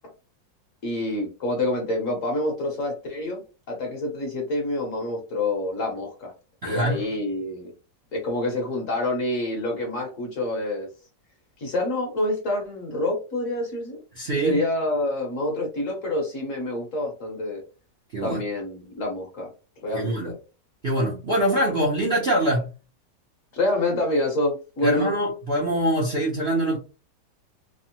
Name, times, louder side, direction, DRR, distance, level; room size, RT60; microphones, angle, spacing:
voice 1, 0.8-3.4 3.7-6.3 6.6-7.7 8.1-10.9 11.6-14.0 14.4-17.6 18.2-19.5 19.8-20.3 23.5-25.1, left 1 dB, 55° left, 1.1 m, -27 dB
voice 2, 6.6-7.1 14.2-14.6 18.1-18.4 19.9-20.3 20.8-22.7 24.8-26.8, right 1 dB, 55° right, 0.7 m, -24 dB
3.4 x 2.0 x 2.7 m
omnidirectional pair, 1.9 m